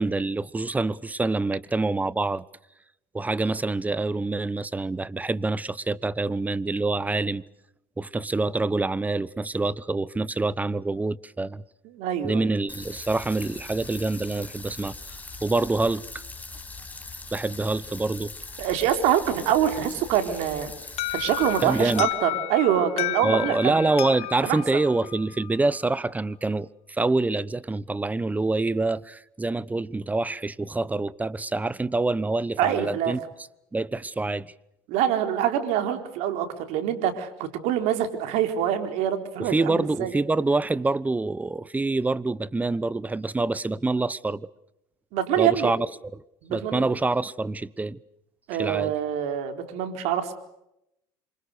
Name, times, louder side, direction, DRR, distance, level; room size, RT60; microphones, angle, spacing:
voice 1, 0.0-2.5 3.1-7.4 8.0-11.6 12.2-15.1 15.4-16.0 17.3-18.3 21.6-22.1 23.2-33.2 33.7-34.5 39.4-44.5 45.4-45.9 46.1-46.2 46.5-48.0 48.6-48.9, right 3 dB, 15° right, 1.0 m, -26 dB
voice 2, 11.9-12.5 18.6-20.7 21.1-23.8 24.4-24.6 32.6-33.2 34.9-40.1 45.1-45.7 46.4-46.9 48.5-50.3, right 10 dB, 70° right, 4.2 m, -25 dB
sound 1, 12.7-22.0, left 3 dB, 15° left, 6.4 m, -41 dB
Alarm, 21.0-25.8, left 17 dB, 60° left, 1.0 m, -32 dB
27.5 x 25.5 x 6.7 m
supercardioid pair, 95°, 12 cm